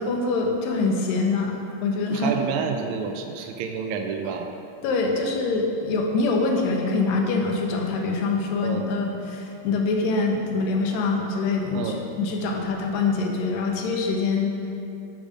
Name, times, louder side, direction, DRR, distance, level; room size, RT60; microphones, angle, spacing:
voice 1, 0.0-2.3 4.8-14.5, left 3 dB, 85° left, 1 dB, 2.5 m, -24 dB
voice 2, 2.1-4.5 8.6-8.9 11.7-12.0, right 6 dB, 85° right, 5 dB, 1.6 m, -29 dB
8.7 x 5.0 x 5.2 m, 2.7 s
omnidirectional pair, 3.9 m